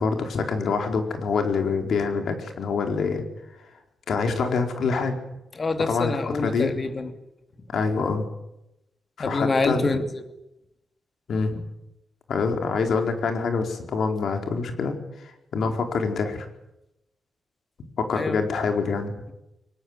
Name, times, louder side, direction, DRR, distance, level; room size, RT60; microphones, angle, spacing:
voice 1, 0.0-3.2 4.1-5.2 5.9-6.7 7.7-8.3 9.2-10.0 11.3-11.6 12.3-16.5 18.0-19.1, left 4 dB, 70° left, 5 dB, 4.6 m, -26 dB
voice 2, 5.5-7.1 9.2-10.2 15.6-15.7 18.1-18.4, left 3 dB, 35° left, 8 dB, 2.9 m, -26 dB
23.5 x 20.0 x 9.9 m, 0.88 s
wide cardioid pair, 140°, 0 cm